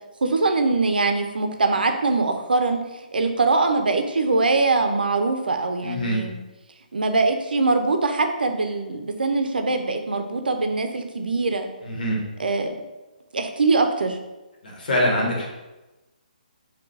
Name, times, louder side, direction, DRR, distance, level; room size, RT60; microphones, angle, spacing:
voice 1, 0.2-6.4 6.9-11.7 12.4-12.7 13.3-14.2, right 3 dB, 90° right, 6 dB, 0.6 m, -22 dB
voice 2, 5.8-6.2 11.8-12.2 14.6-15.5, equal, 75° left, -1 dB, 1.4 m, -24 dB
5.1 x 2.8 x 3.3 m, 1.1 s
hypercardioid pair, 150°, 5 cm